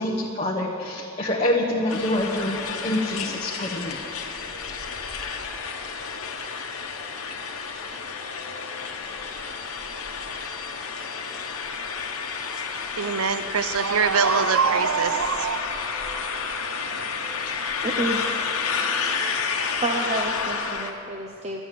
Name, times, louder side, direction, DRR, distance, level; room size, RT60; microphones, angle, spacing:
voice 1, 0.0-4.0 4.5-4.7, left 1 dB, 25° left, 0.9 m, -26 dB
sound 1, 1.9-20.9, left 5 dB, 70° left, 1.1 m, -30 dB
voice 2, 13.0-15.6, right 6 dB, 75° right, 0.6 m, -23 dB
voice 3, 17.8-18.2 19.8-21.6, right 2 dB, 30° right, 0.7 m, -29 dB
12.0 x 9.9 x 7.5 m
head